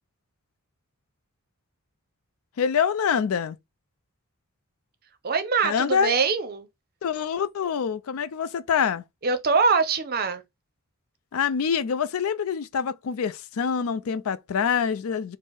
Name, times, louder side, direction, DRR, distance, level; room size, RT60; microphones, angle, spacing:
voice 1, 2.6-3.6 5.6-6.1 7.0-9.0 11.3-15.4, left 7 dB, 70° left, 0.4 m, -25 dB
voice 2, 5.2-6.7 9.2-10.4, right 5 dB, 45° right, 0.6 m, -23 dB
4.5 x 2.0 x 4.5 m
head